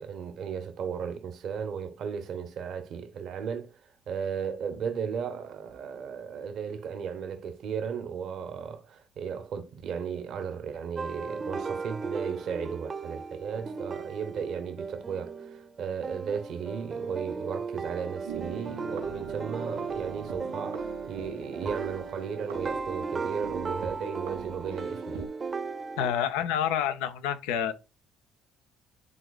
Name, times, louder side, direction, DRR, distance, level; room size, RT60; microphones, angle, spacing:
voice 1, 0.0-25.2, right 7 dB, 60° right, 0.9 m, -35 dB
sound 1, 11.0-26.1, right 4 dB, 35° right, 0.7 m, -36 dB
sound 2, 18.2-25.3, right 6 dB, 90° right, 2.2 m, -42 dB
voice 2, 26.0-27.7, left 9 dB, 80° left, 0.6 m, -28 dB
11.0 x 3.8 x 2.4 m
hypercardioid pair, 60°, 0 cm